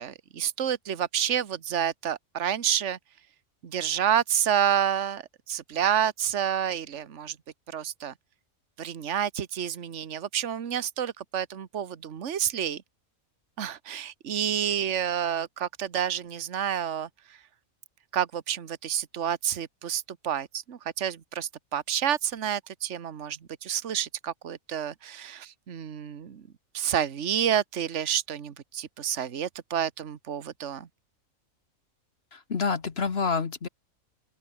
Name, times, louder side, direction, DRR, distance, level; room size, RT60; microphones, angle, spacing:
voice 1, 0.0-3.0 3.6-7.4 7.7-8.1 8.8-12.8 13.6-17.1 18.1-26.5 26.7-30.9, right 9 dB, 55° right, 1.5 m, -29 dB
voice 2, 32.3-33.7, left 5 dB, 45° left, 1.5 m, -28 dB
open air
omnidirectional pair, 1.5 m